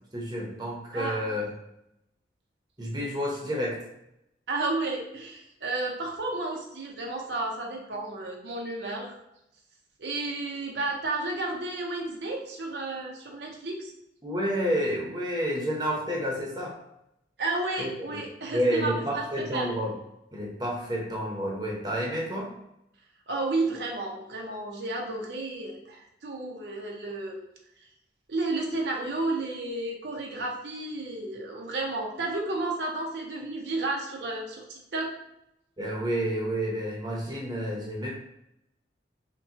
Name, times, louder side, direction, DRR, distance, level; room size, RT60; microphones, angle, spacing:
voice 1, 0.1-1.4 2.8-3.8 14.2-16.8 17.8-18.2 18.5-19.9 20.3-22.5 35.8-38.1, equal, 25° right, -3 dB, 0.8 m, -30 dB
voice 2, 0.9-1.3 4.5-9.2 10.0-13.9 17.4-19.7 23.3-27.5 28.3-35.1, right 2 dB, 75° right, 0 dB, 0.7 m, -32 dB
5.7 x 2.3 x 2.8 m, 0.82 s
head